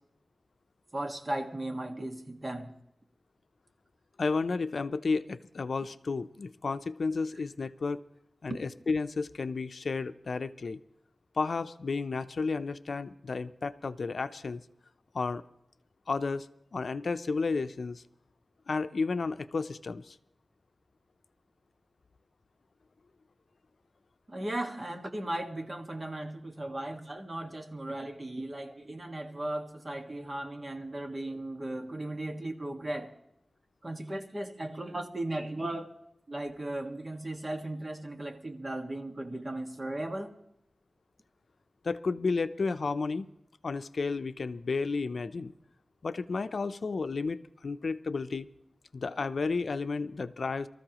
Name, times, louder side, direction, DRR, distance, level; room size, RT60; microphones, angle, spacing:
voice 1, 0.9-2.7 24.3-33.1 33.8-35.9 36.3-40.3, right 1 dB, 35° right, 1.6 m, -36 dB
voice 2, 4.2-8.0 8.4-10.8 11.4-14.6 15.1-15.4 16.1-16.5 16.7-18.0 18.7-20.2 41.8-43.3 43.6-45.5 46.0-48.5 48.9-50.7, left 4 dB, 70° left, 0.5 m, -32 dB
25.0 x 14.0 x 3.0 m
wide cardioid pair, 90°, 0 cm